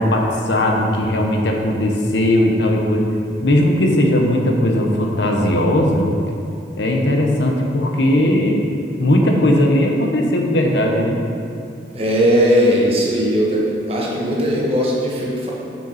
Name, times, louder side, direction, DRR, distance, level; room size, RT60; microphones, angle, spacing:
voice 1, 0.0-3.1 3.4-6.1 6.8-8.6 9.0-11.2, left 1 dB, 80° left, 1 dB, 0.9 m, -17 dB
voice 2, 11.9-13.6 13.9-15.5, equal, 35° right, -4 dB, 1.3 m, -18 dB
6.6 x 5.8 x 4.3 m, 2.6 s
head